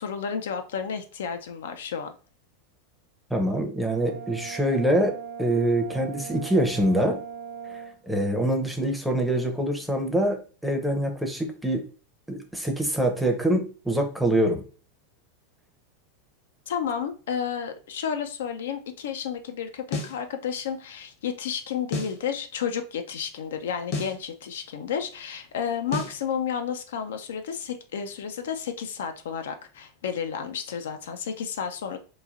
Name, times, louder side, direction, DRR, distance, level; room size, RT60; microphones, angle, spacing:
voice 1, 0.0-2.1 16.7-32.0, left 7 dB, 80° left, 7 dB, 0.4 m, -31 dB
voice 2, 3.3-7.2 7.7-7.8 8.1-11.9 12.3-14.6, right 1 dB, ahead, 3 dB, 0.6 m, -25 dB
Brass instrument, 3.9-8.0, right 7 dB, 70° right, 0.6 m, -39 dB
sound 1, 19.9-20.2 21.9-22.2 23.9-24.2 25.9-26.2, left 3 dB, 60° left, 0.8 m, -31 dB
3.0 x 2.3 x 2.4 m, 0.37 s
hypercardioid pair, 110°, 0 cm